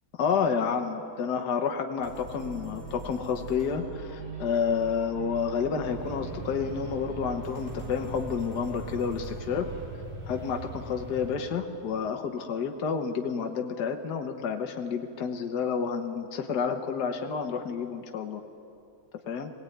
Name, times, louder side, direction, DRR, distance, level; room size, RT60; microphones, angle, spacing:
voice 1, 0.2-9.7 10.2-18.4 19.3-19.5, left 6 dB, 55° left, 4 dB, 1.6 m, -30 dB
sound 1, 2.0-9.8, right 4 dB, 45° right, 6.1 m, -41 dB
sound 2, 5.8-11.4, right 1 dB, 5° right, 4.5 m, -41 dB
22.5 x 18.0 x 9.3 m, 2.6 s
omnidirectional pair, 2.3 m